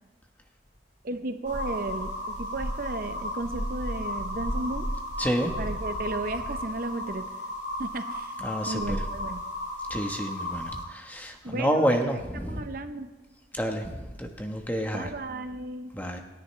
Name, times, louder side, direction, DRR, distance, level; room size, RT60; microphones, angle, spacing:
voice 1, 1.0-4.9 5.6-7.3 7.8-8.4 8.7-9.4 10.0-10.3 11.4-13.1 14.9-15.9, right 2 dB, 50° right, 8 dB, 0.7 m, -34 dB
sound 1, 1.5-10.8, equal, 85° left, 5.1 m, -34 dB
voice 2, 5.2-5.6 8.4-9.0 9.9-12.7 13.5-15.1 15.9-16.2, equal, 10° left, 3 dB, 1.2 m, -29 dB
28.0 x 10.5 x 3.3 m, 1.2 s
head